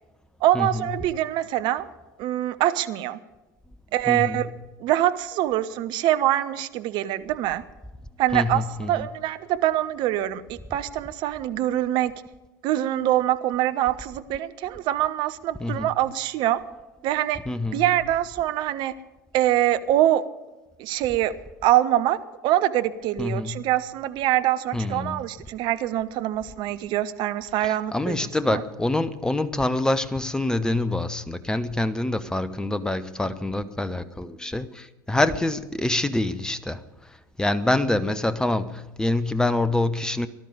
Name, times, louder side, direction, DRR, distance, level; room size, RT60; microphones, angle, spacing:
voice 1, 0.4-1.9 2.2-3.2 3.9-4.5 4.8-7.6 8.2-12.1 12.6-16.6 17.0-17.4 17.7-19.0 19.3-20.3 20.8-21.4 21.6-28.6, right 13 dB, 45° right, 0.8 m, -24 dB
voice 2, 4.1-4.4 8.3-9.1 15.6-15.9 17.5-17.8 23.2-23.6 24.7-25.2 27.6-36.8 37.4-40.3, left 2 dB, 5° left, 0.9 m, -26 dB
18.5 x 12.0 x 5.1 m
figure-of-eight pair, 75°, 11 cm